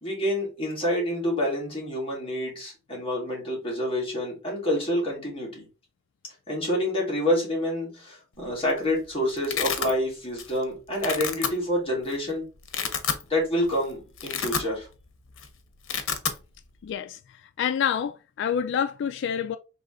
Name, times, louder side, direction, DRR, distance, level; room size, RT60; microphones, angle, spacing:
voice 1, 0.0-5.6 6.5-12.4 13.3-14.9, left 1 dB, 30° left, 2.1 m, -27 dB
Domestic sounds home sounds, 8.4-8.8 9.0-9.9 10.4-10.6 10.9-11.5 12.1-12.2 12.6-13.2 13.6-13.8 14.1-15.0 15.3-15.5 15.7-16.4, left 7 dB, 90° left, 0.8 m, -29 dB
voice 2, 16.8-17.2 17.6-19.6, left 8 dB, 60° left, 0.3 m, -27 dB
3.9 x 3.1 x 3.7 m
head